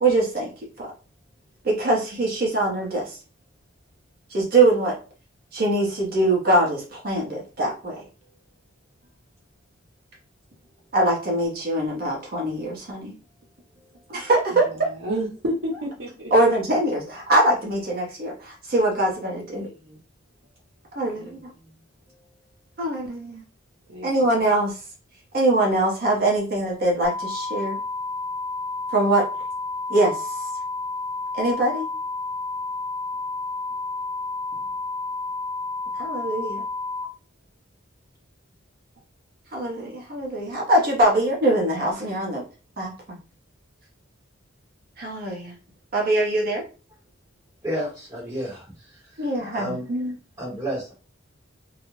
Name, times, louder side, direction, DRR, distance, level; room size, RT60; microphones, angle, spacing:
voice 1, 0.0-0.5 0.8-0.9 1.6-3.2 4.3-5.0 5.5-8.0 10.9-13.1 14.1-14.9 16.3-19.7 20.9-21.5 22.8-23.4 24.0-24.7 25.3-27.8 28.9-29.2 29.9-30.3 31.4-31.9 36.0-36.6 39.5-42.4 42.8-43.2 45.0-45.5 45.9-46.6 49.2-50.1, right 1 dB, 50° right, -2 dB, 0.7 m, -23 dB
voice 2, 14.5-16.3 19.3-20.0 21.2-21.7 23.9-24.6, right 1 dB, 80° right, -6 dB, 0.8 m, -33 dB
sound 1, 27.0-37.0, left 3 dB, 40° left, 0.4 m, -31 dB
voice 3, 47.6-49.9 50.4-50.9, equal, 20° right, -6 dB, 0.8 m, -32 dB
2.3 x 2.0 x 2.9 m, 0.34 s
head